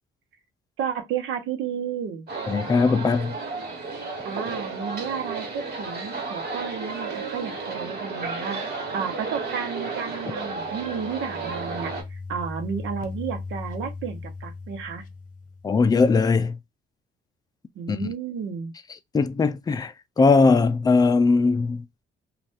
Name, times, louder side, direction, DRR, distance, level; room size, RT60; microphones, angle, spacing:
voice 1, 0.8-2.3 4.2-15.0 17.8-18.7, right 7 dB, 85° right, 0.9 m, -32 dB
sound 1, 2.3-12.0, right 3 dB, 55° right, 1.5 m, -33 dB
voice 2, 2.5-3.3 15.6-16.6 17.9-18.1 19.1-21.8, left 4 dB, 20° left, 0.4 m, -20 dB
sound 2, 10.4-16.0, left 3 dB, 40° left, 0.8 m, -38 dB
2.6 x 2.4 x 3.4 m
cardioid pair, 90°, 20 cm